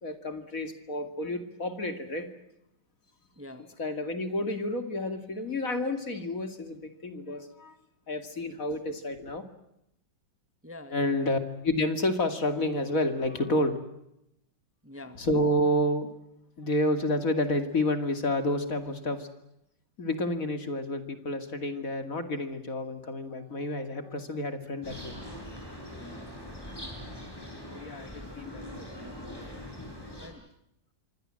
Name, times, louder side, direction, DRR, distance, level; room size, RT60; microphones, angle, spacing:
voice 1, 0.0-2.3 3.8-7.8 8.1-9.4 10.9-13.8 15.2-16.1 16.6-19.3 20.0-25.2 27.7-28.8, left 1 dB, 45° left, 7 dB, 2.8 m, -30 dB
voice 2, 3.3-3.7 10.6-11.3 14.8-15.2 28.8-29.2 30.2-30.4, left 1 dB, 10° right, 9 dB, 1.5 m, -46 dB
sound 1, 24.8-30.3, left 1 dB, 10° left, 7.7 m, -42 dB
27.5 x 25.0 x 7.7 m, 0.82 s
omnidirectional pair, 2.0 m